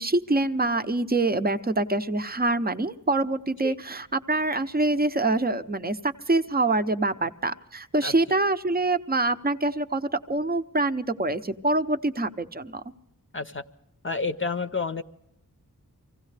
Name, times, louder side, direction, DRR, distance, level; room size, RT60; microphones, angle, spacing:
voice 1, 0.0-12.8, right 2 dB, 25° right, 10 dB, 0.7 m, -25 dB
voice 2, 14.0-15.0, left 4 dB, 35° left, 8 dB, 0.7 m, -29 dB
25.0 x 16.5 x 3.3 m, 0.80 s
wide cardioid pair, 80°, 37 cm